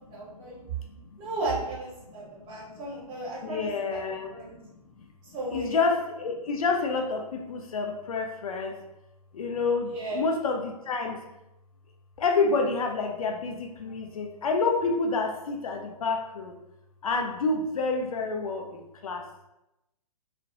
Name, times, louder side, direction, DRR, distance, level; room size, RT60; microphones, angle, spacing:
voice 1, 0.1-0.7 1.2-4.0 4.3-4.5 5.2-5.8 9.9-10.3, right 2 dB, 25° right, -6 dB, 1.0 m, -35 dB
voice 2, 3.4-4.7 5.0-5.1 5.5-8.8 9.3-11.2 12.2-16.5 17.0-19.2, left 4 dB, 60° left, 3 dB, 0.4 m, -28 dB
2.2 x 2.1 x 2.5 m, 0.91 s
figure-of-eight pair, 115°, 20 cm